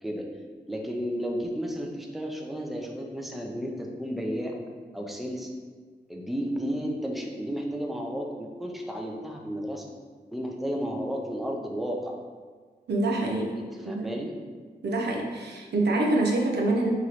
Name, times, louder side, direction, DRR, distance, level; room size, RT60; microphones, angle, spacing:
voice 1, 0.7-4.5 4.9-5.5 6.1-9.9 10.3-12.1 13.6-14.3, equal, ahead, 1 dB, 0.5 m, -33 dB
voice 2, 12.9-13.5 13.8-14.1 14.8-16.9, right 2 dB, 85° right, 0 dB, 0.6 m, -25 dB
3.0 x 3.0 x 3.8 m, 1.5 s
cardioid pair, 70°, 17 cm